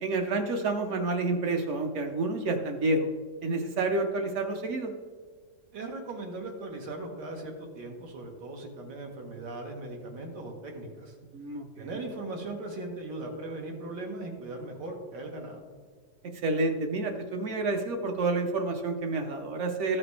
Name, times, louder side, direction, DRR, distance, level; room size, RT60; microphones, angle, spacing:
voice 1, 0.0-3.1 3.4-4.9 11.3-11.9 16.4-20.0, right 2 dB, 60° right, 5 dB, 0.8 m, -29 dB
voice 2, 5.7-11.1 11.8-15.6, right 2 dB, 90° right, 1 dB, 1.9 m, -39 dB
13.5 x 5.9 x 3.2 m, 1.5 s
omnidirectional pair, 1.9 m